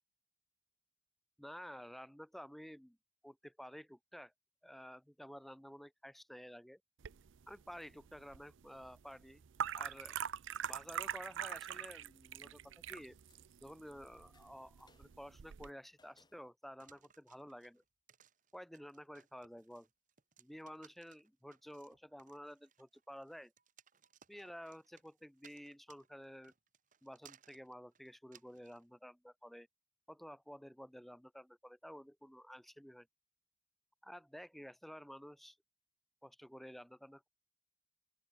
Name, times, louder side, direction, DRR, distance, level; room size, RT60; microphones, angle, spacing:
voice 1, 1.4-3.0 3.2-4.3 4.6-6.8 7.5-9.4 9.8-10.2 10.7-13.2 13.6-17.8 18.5-19.9 20.4-23.5 24.3-26.5 27.0-29.7 30.1-33.1 34.0-35.6 36.2-37.3, equal, ahead, 0.3 m, -52 dB
sound 1, 7.0-15.7, right 9 dB, 70° right, 0.5 m, -44 dB
sound 2, 11.2-16.5, left 3 dB, 20° left, 7.1 m, -76 dB
sound 3, 16.8-28.8, right 8 dB, 40° right, 1.3 m, -65 dB
open air
head